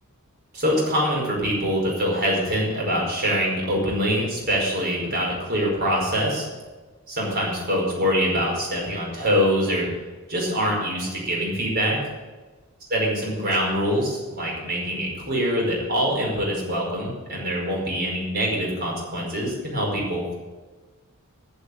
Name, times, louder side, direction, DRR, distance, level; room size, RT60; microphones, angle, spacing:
voice 1, 0.5-6.5 7.1-9.9 10.3-12.0 12.9-20.3, equal, 45° right, -2 dB, 5.1 m, -24 dB
13.5 x 7.0 x 8.0 m, 1.3 s
head